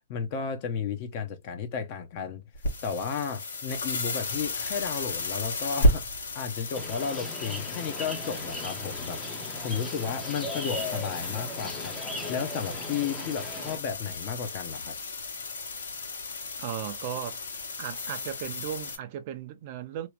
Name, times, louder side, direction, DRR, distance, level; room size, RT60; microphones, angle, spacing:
voice 1, 0.1-2.4 2.8-6.0 6.3-12.0 12.3-14.9, left 6 dB, 35° left, 0.8 m, -33 dB
sound 1, 2.5-19.0, left 2 dB, 85° left, 1.4 m, -33 dB
sound 2, 6.7-13.8, left 1 dB, 5° left, 0.7 m, -38 dB
voice 2, 16.6-17.4 17.8-20.1, right 10 dB, 40° right, 0.5 m, -36 dB
3.0 x 2.5 x 3.1 m
hypercardioid pair, 155°, 0 cm